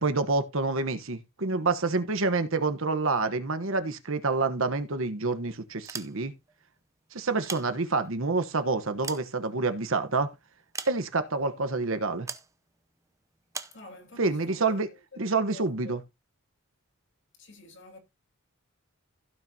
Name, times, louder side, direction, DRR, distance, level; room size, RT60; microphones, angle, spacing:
voice 1, 0.0-6.3 7.1-10.3 10.9-12.3 14.2-14.9 15.2-16.0, right 3 dB, 65° right, 1.1 m, -27 dB
sound 1, 5.7-6.5 7.2-8.2 8.7-10.0 10.7-11.4 12.3-12.5 13.5-13.8, right 4 dB, 15° right, 0.7 m, -40 dB
voice 2, 13.7-15.2 15.5-16.0 17.4-18.0, left 3 dB, 55° left, 2.5 m, -49 dB
16.0 x 6.0 x 2.8 m
head